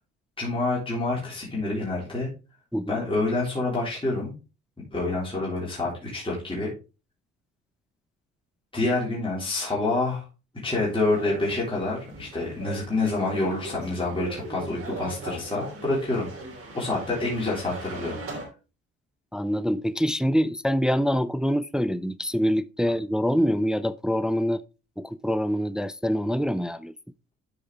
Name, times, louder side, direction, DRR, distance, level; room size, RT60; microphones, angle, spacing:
voice 1, 0.4-2.3 2.9-4.3 4.9-6.7 8.7-10.2 10.6-16.3 16.7-18.2, left 2 dB, 15° left, 3.6 m, -27 dB
sound 1, 10.8-18.5, right 2 dB, 50° right, 3.2 m, -39 dB
voice 2, 19.3-24.6 25.0-26.9, equal, ahead, 0.4 m, -25 dB
12.0 x 5.0 x 3.3 m
cardioid pair, 90°, 30 cm